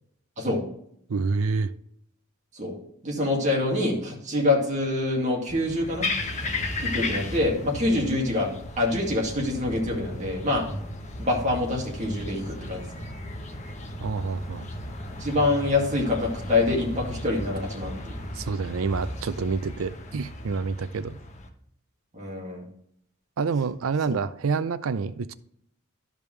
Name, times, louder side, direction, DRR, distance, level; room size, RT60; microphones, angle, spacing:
voice 1, 1.1-1.7 14.0-14.7 18.3-21.2 23.4-25.3, right 4 dB, 70° right, 0.5 m, -28 dB
voice 2, 3.0-6.1 6.8-8.5 8.8-10.7 11.2-13.1 15.2-18.2 22.1-22.7 24.1-24.2, left 2 dB, 35° right, 2.1 m, -26 dB
sound 1, 5.5-21.5, left 2 dB, 35° left, 0.9 m, -35 dB
12.5 x 5.2 x 3.2 m
head